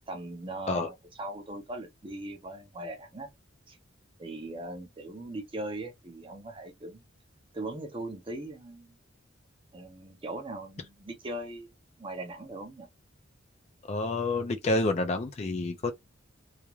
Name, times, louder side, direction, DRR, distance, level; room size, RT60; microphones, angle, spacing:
voice 1, 0.1-3.3 3.7-3.8 4.2-7.0 7.5-8.9 9.7-11.7 12.0-12.9, right 2 dB, 25° right, 0.5 m, -39 dB
voice 2, 13.9-15.9, left 2 dB, 30° left, 0.3 m, -28 dB
2.4 x 2.1 x 2.9 m
head